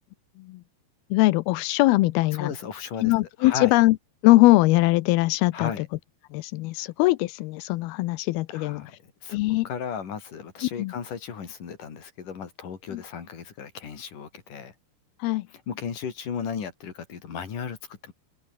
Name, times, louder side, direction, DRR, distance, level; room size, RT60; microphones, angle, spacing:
voice 1, 1.1-2.5 3.0-4.0 4.2-5.7 6.3-8.9 9.3-9.7 10.8-10.9 12.9-13.0 15.2-15.5, left 19 dB, 85° left, 2.5 m, -21 dB
voice 2, 2.3-3.1 3.4-3.7 5.5-5.9 6.8-6.9 8.5-9.4 9.6-14.7 15.5-18.1, left 7 dB, 55° left, 4.9 m, -35 dB
open air
omnidirectional pair, 4.6 m